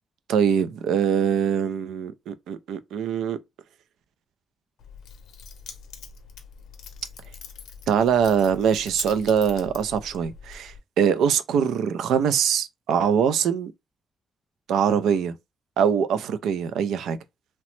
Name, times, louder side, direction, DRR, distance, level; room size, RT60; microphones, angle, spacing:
voice 1, 0.3-3.4 7.9-13.7 14.7-15.3 15.8-17.2, right 7 dB, 90° right, 0.3 m, -23 dB
Keys jangling, 4.8-10.8, left 6 dB, 85° left, 0.6 m, -43 dB
2.9 x 2.0 x 3.0 m
cardioid pair, 95°, 0 cm